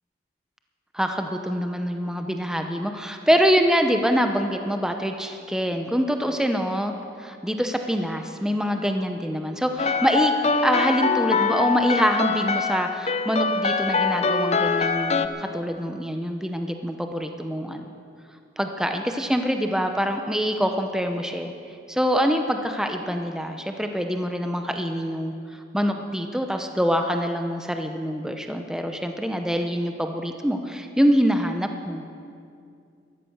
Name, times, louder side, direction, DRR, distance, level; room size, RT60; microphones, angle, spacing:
voice 1, 0.9-6.9 7.2-10.3 10.6-17.9 18.6-21.5 21.9-32.0, equal, 5° right, 5 dB, 0.7 m, -25 dB
sound 1, 9.8-15.3, left 4 dB, 35° left, 0.5 m, -23 dB
13.5 x 13.5 x 6.4 m, 2.4 s
head